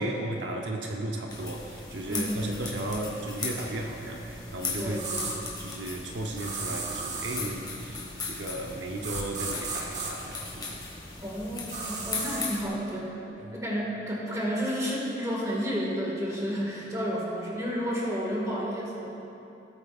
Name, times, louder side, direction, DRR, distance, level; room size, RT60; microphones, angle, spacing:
voice 1, 0.0-5.0 5.2-10.9 12.0-12.1 13.4-13.6, right 1 dB, 75° right, 0 dB, 0.9 m, -35 dB
sound 1, 1.3-12.7, left 3 dB, 25° left, 1.6 m, -38 dB
voice 2, 2.1-2.5 4.8-5.2 11.2-19.1, equal, 20° right, -4 dB, 1.9 m, -31 dB
sound 2, 4.9-5.4 6.4-7.4 9.0-10.1 11.7-12.4, right 4 dB, 40° right, 1.2 m, -34 dB
18.0 x 8.7 x 2.5 m, 2.8 s
head